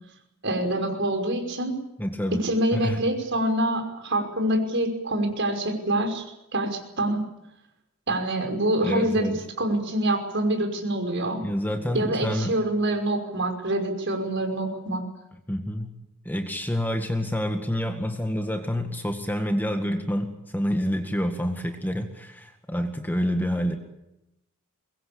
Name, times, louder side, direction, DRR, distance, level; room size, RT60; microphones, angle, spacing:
voice 1, 0.4-1.8 2.3-6.3 6.5-7.2 8.1-11.4 11.9-15.0, right 1 dB, 55° right, 4 dB, 5.6 m, -26 dB
voice 2, 2.0-2.4 2.7-3.0 8.8-9.3 11.4-12.6 15.5-16.0 16.3-23.8, equal, 10° left, 5 dB, 1.9 m, -28 dB
23.5 x 22.0 x 8.6 m, 0.88 s
head